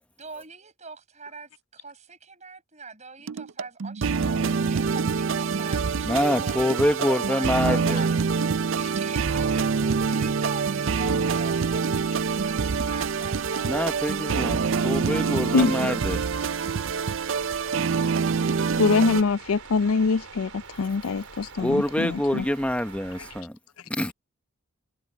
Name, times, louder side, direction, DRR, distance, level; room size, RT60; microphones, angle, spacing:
voice 1, 0.2-6.9 7.3-8.1 8.4-9.6 10.0-13.9, right 4 dB, 30° right, 7.6 m, -43 dB
sound 1, 3.3-19.2, right 5 dB, 60° right, 0.5 m, -25 dB
voice 2, 6.0-8.1 13.7-16.2 21.6-23.6 23.9-24.1, left 1 dB, 5° left, 1.0 m, -26 dB
sound 2, 12.1-23.4, right 5 dB, 80° right, 4.0 m, -44 dB
sound 3, 15.1-20.4, right 2 dB, 10° right, 3.4 m, -53 dB
voice 3, 18.8-22.4, left 4 dB, 75° left, 0.5 m, -23 dB
head